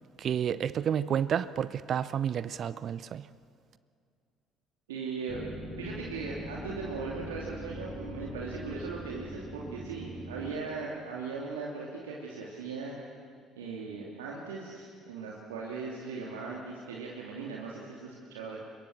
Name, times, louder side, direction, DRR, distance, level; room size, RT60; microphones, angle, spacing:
voice 1, 0.2-3.3, right 9 dB, 45° right, 0.6 m, -30 dB
voice 2, 4.9-5.4 5.8-12.9 13.6-18.6, right 4 dB, 75° right, 2.7 m, -39 dB
sound 1, 5.3-10.5, equal, 20° right, 4.5 m, -42 dB
25.0 x 22.5 x 7.3 m
figure-of-eight pair, 55°, 0 cm